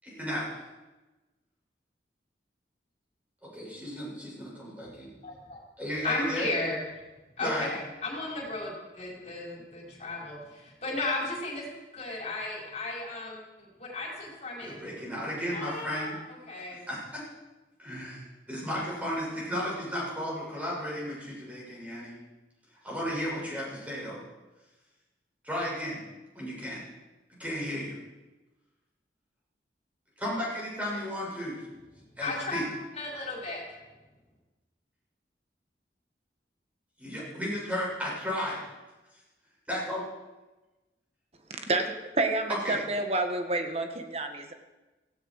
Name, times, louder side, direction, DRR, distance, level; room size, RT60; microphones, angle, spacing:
voice 1, 0.0-0.5 3.4-5.1 5.8-6.5 7.4-7.7 14.6-16.1 16.7-17.2 17.8-18.2 18.5-22.2 22.8-24.2 25.4-26.1 26.4-26.8 27.4-28.0 30.2-31.6 32.2-32.7 37.0-38.6 39.7-40.0 42.6-42.8, equal, 10° right, -5 dB, 7.1 m, -34 dB
voice 2, 5.2-5.6 6.0-6.8 7.4-11.6 11.9-14.8 15.5-16.1 16.5-16.8 32.2-32.6 32.9-33.6, left 2 dB, 40° left, -2 dB, 5.5 m, -35 dB
voice 3, 41.7-44.5, right 2 dB, 35° right, 5 dB, 1.6 m, -29 dB
17.0 x 16.5 x 4.9 m, 1.1 s
head